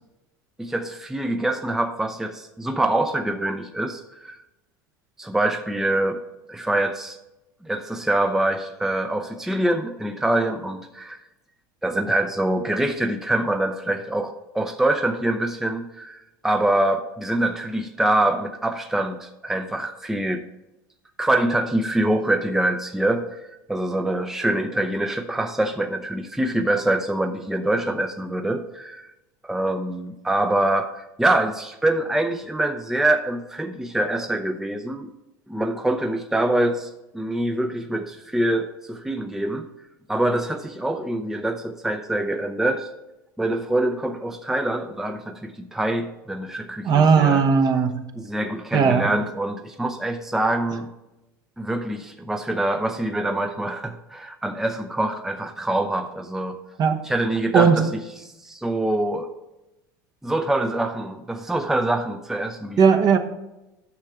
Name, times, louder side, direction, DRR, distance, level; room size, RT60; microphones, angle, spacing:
voice 1, 0.6-4.4 5.2-6.2 6.5-7.2 7.6-11.2 11.8-20.4 21.2-23.4 23.7-29.1 29.4-35.1 35.5-39.7 40.1-42.9 43.4-47.4 48.1-50.9 51.6-56.6 57.0-59.3 60.2-62.8, right 1 dB, 5° right, 6 dB, 0.6 m, -25 dB
voice 2, 46.8-48.0 48.7-49.1 56.8-57.0 57.5-57.8 62.8-63.2, right 6 dB, 40° right, 6 dB, 0.9 m, -17 dB
9.7 x 6.5 x 3.6 m, 0.97 s
hypercardioid pair, 85°, 10 cm